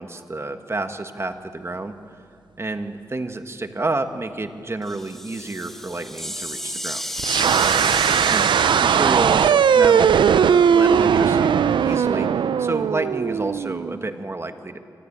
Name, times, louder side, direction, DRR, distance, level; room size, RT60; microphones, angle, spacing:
voice 1, 0.0-1.9 2.6-7.0 8.2-8.5 8.8-14.8, right 2 dB, 35° right, 8 dB, 1.5 m, -29 dB
sound 1, 4.8-10.7, equal, 5° left, 2.3 m, -33 dB
sound 2, 7.2-14.0, right 7 dB, 90° right, 0.5 m, -18 dB
25.0 x 14.0 x 8.7 m, 2.4 s
cardioid pair, 60°, 8 cm